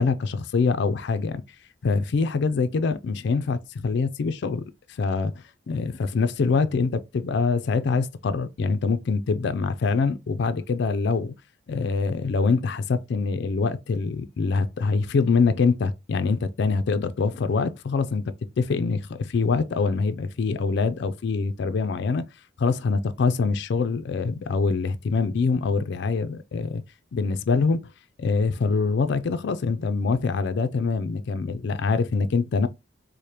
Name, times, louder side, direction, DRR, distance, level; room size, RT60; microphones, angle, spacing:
voice 1, 0.0-1.4 1.8-4.6 5.0-11.3 11.7-18.2 18.6-22.3 22.6-26.8 27.1-27.9 28.2-32.7, left 4 dB, 60° left, 0.4 m, -24 dB
4.8 x 2.1 x 2.8 m
head